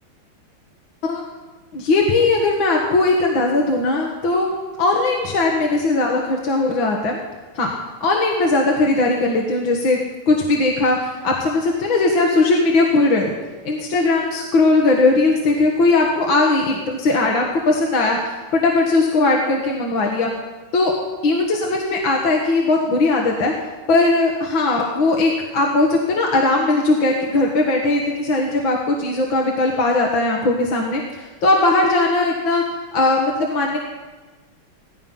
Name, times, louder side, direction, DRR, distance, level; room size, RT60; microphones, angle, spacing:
voice 1, 1.7-4.5 4.8-7.2 7.6-7.7 8.0-10.0 10.3-13.3 13.6-20.3 20.7-20.9 21.2-23.5 23.9-32.6 32.9-33.8, left 2 dB, 65° left, 0 dB, 2.4 m, -19 dB
17.0 x 15.0 x 5.6 m, 1.3 s
omnidirectional pair, 2.4 m